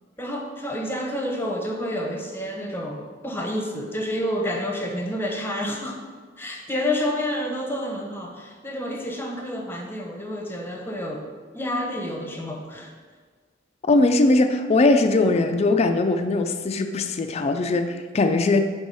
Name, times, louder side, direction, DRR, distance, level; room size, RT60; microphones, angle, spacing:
voice 1, 0.2-6.0 6.4-11.3 11.5-12.9, left 1 dB, 10° left, 0 dB, 0.8 m, -29 dB
voice 2, 13.8-18.6, left 2 dB, 35° left, 7 dB, 0.4 m, -20 dB
6.3 x 3.5 x 5.4 m, 1.5 s
head